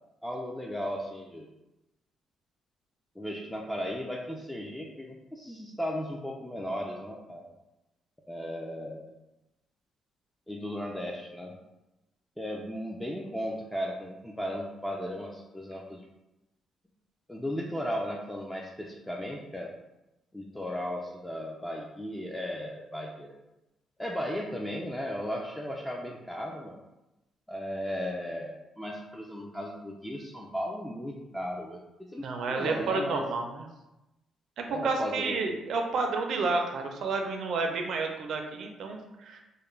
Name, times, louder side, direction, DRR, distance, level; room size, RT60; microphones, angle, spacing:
voice 1, 0.2-1.5 3.2-7.5 8.3-9.1 10.5-11.6 12.4-16.0 17.3-19.7 20.3-23.4 24.0-26.8 27.5-31.8 32.1-33.2 34.7-35.4, equal, 5° left, -2 dB, 0.3 m, -36 dB
voice 2, 32.2-33.7 34.6-39.4, right 4 dB, 70° right, 3 dB, 0.4 m, -30 dB
2.3 x 2.1 x 3.1 m, 0.97 s
cardioid pair, 90°, 0 cm